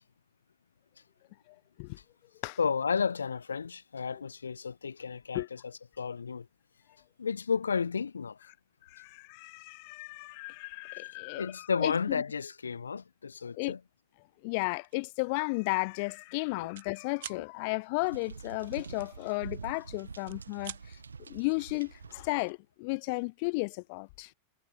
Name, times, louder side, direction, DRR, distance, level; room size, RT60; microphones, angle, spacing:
voice 1, 1.5-2.0 2.4-2.6 5.3-5.5 8.8-11.9 13.6-13.7 14.4-21.0 21.3-24.3, left 30 dB, 45° left, 1.9 m, -34 dB
voice 2, 2.6-6.5 7.2-8.5 11.4-13.8 16.6-16.7, left 5 dB, 75° left, 2.2 m, -32 dB
sound 1, 14.8-15.1 15.5-15.7 16.0-16.9 17.2-17.4 19.0-19.8 20.1-20.8, right 13 dB, 60° right, 1.9 m, -45 dB
sound 2, 18.0-22.5, right 5 dB, 75° right, 3.0 m, -46 dB
figure-of-eight pair, 90°, 0 cm